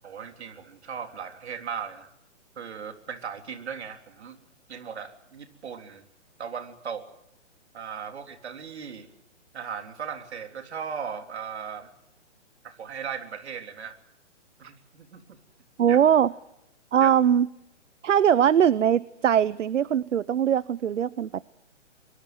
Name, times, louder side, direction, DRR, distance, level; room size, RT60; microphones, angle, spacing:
voice 1, 0.0-2.1 2.6-4.4 4.7-6.0 6.4-7.1 7.7-9.1 9.5-11.9 12.6-14.0 14.6-15.4 15.9-16.0 17.0-17.1, right 7 dB, 60° right, 6 dB, 3.7 m, -37 dB
voice 2, 15.8-16.3 16.9-17.5 18.0-21.4, right 9 dB, 80° right, 19 dB, 0.8 m, -21 dB
23.5 x 22.5 x 7.7 m, 0.82 s
hypercardioid pair, 160°, 36 cm